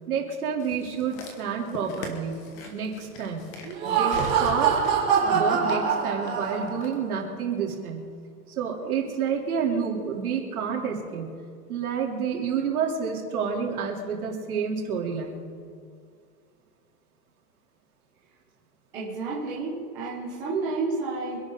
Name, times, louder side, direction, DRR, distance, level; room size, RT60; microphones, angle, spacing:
voice 1, 0.1-2.4 2.7-3.4 3.8-4.7 5.2-8.1 8.6-11.4 11.7-15.4, right 6 dB, 60° right, -1 dB, 3.5 m, -29 dB
sound 1, 0.6-7.0 7.7-7.8, left 2 dB, 20° left, 1.3 m, -42 dB
Laughter, 3.6-6.9, right 6 dB, 20° right, 4.4 m, -24 dB
voice 2, 18.9-21.4, right 3 dB, 5° right, -7 dB, 0.7 m, -30 dB
25.5 x 11.5 x 3.9 m, 2.2 s
hypercardioid pair, 175°, 49 cm